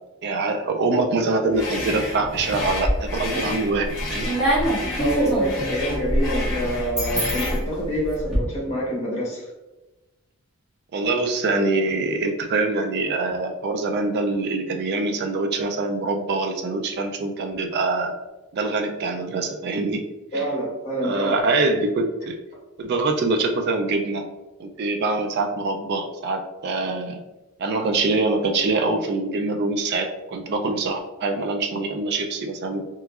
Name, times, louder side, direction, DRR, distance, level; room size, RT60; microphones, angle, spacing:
voice 1, 0.2-4.3 10.9-18.1 18.5-20.0 20.3-20.5 21.0-22.4 22.8-24.2 24.6-27.2 27.6-32.8, right 3 dB, 45° right, 5 dB, 0.3 m, -24 dB
sound 1, 1.5-7.7, left 2 dB, 55° left, 0.8 m, -31 dB
sound 2, 2.8-3.3 3.7-8.4, right 1 dB, 5° right, 1.2 m, -25 dB
voice 2, 5.0-9.4 20.3-21.3, right 1 dB, 30° left, -4 dB, 1.0 m, -26 dB
3.4 x 3.0 x 2.4 m, 1.1 s
head